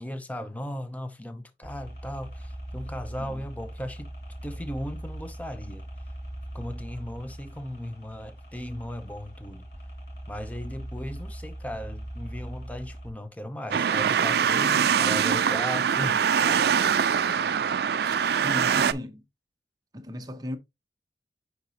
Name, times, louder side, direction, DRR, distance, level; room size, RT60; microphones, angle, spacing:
voice 1, 0.0-4.1 4.4-5.8 6.5-9.7 10.3-16.9, equal, 10° left, 0.6 m, -37 dB
sound 1, 1.6-13.1, right 1 dB, 60° left, 1.9 m, -40 dB
sound 2, 13.7-18.9, right 7 dB, 60° right, 0.3 m, -23 dB
voice 2, 18.4-19.2 19.9-20.6, equal, 20° right, 0.8 m, -36 dB
9.1 x 4.1 x 2.8 m
head